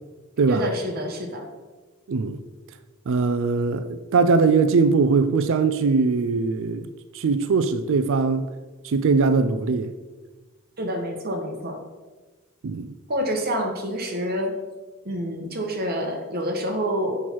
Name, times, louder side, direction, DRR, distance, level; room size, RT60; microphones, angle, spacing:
voice 1, 0.5-1.5 10.8-11.8 13.1-14.5 15.0-17.2, equal, 45° right, 1.2 m, -27 dB
voice 2, 2.1-2.4 3.1-6.9 7.1-8.5 8.8-9.9 12.6-12.9, right 4 dB, 60° right, 0.4 m, -21 dB
6.4 x 5.7 x 4.5 m
head